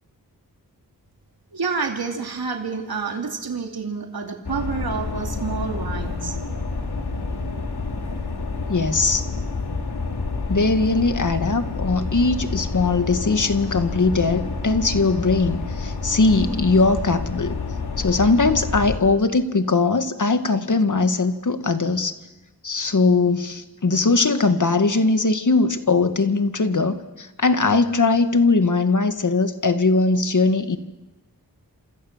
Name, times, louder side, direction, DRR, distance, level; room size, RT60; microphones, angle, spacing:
voice 1, 1.5-6.4, right 5 dB, 70° right, 3 dB, 2.7 m, -28 dB
sound 1, 4.4-19.0, left 3 dB, 80° left, 3.4 m, -29 dB
voice 2, 8.7-9.3 10.5-17.6 18.0-22.1 22.6-30.8, left 3 dB, 50° left, 9 dB, 1.9 m, -20 dB
28.0 x 27.0 x 7.4 m, 1.1 s
wide cardioid pair, 95°, 38 cm